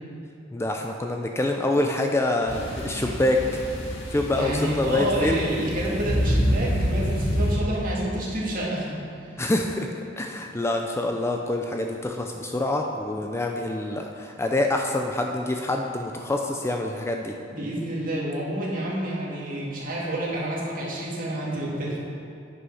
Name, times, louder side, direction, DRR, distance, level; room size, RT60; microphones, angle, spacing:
voice 1, 0.5-3.6 4.1-5.4 9.4-9.9 10.2-17.3, left 2 dB, 15° left, 2 dB, 0.4 m, -26 dB
sound 1, 2.5-7.5, equal, 70° left, 1.8 m, -27 dB
voice 2, 4.3-9.0 17.6-22.0, right 1 dB, 45° right, -5 dB, 2.1 m, -29 dB
9.6 x 5.5 x 5.6 m, 2.7 s
head